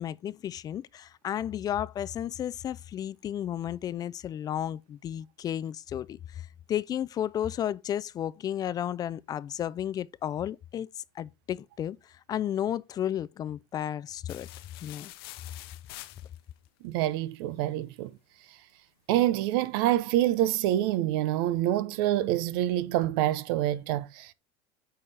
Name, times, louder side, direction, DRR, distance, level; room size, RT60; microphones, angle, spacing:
voice 1, 0.0-10.9 11.2-14.5 14.8-15.1, left 10 dB, 30° left, 0.4 m, -33 dB
sound 1, 14.3-16.7, left 17 dB, 85° left, 0.7 m, -46 dB
voice 2, 16.8-18.1 19.1-24.3, right 13 dB, 75° right, 0.7 m, -26 dB
8.5 x 5.6 x 3.3 m
supercardioid pair, 125°, 12 cm